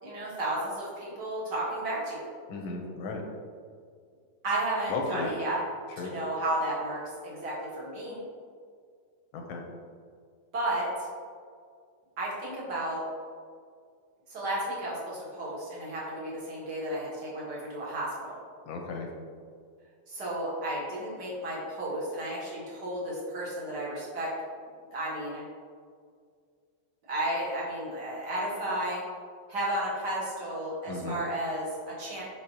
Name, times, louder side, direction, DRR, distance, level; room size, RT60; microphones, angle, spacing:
voice 1, 0.0-2.2 4.4-5.6 6.0-8.2 10.5-11.1 12.2-13.0 14.3-18.4 20.1-24.3 24.9-25.4 27.1-29.0 29.5-32.2, right 1 dB, 60° right, -6 dB, 2.1 m, -33 dB
voice 2, 2.5-3.2 4.9-5.3 6.0-6.1 9.3-9.6 18.6-19.1 30.9-31.2, left 3 dB, 90° left, 1 dB, 1.6 m, -35 dB
6.3 x 5.5 x 2.9 m, 2.1 s
omnidirectional pair, 2.1 m